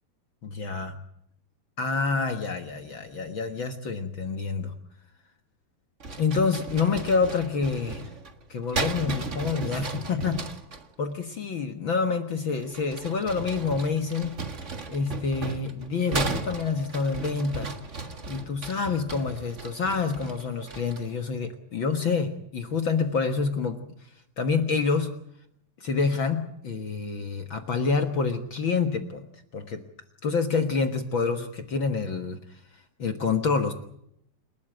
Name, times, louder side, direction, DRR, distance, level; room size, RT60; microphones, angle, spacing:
voice 1, 0.4-1.0 1.8-4.7 6.2-8.0 8.5-10.4 11.0-14.4 14.9-17.7 18.3-23.8 24.4-25.1 25.8-29.2 29.5-29.8 30.2-32.4 33.0-33.7, left 4 dB, 60° left, 7 dB, 1.3 m, -27 dB
sound 1, 6.0-10.8 12.6-21.2, right 3 dB, 50° right, 0.8 m, -36 dB
28.5 x 13.0 x 9.1 m, 0.73 s
omnidirectional pair, 4.3 m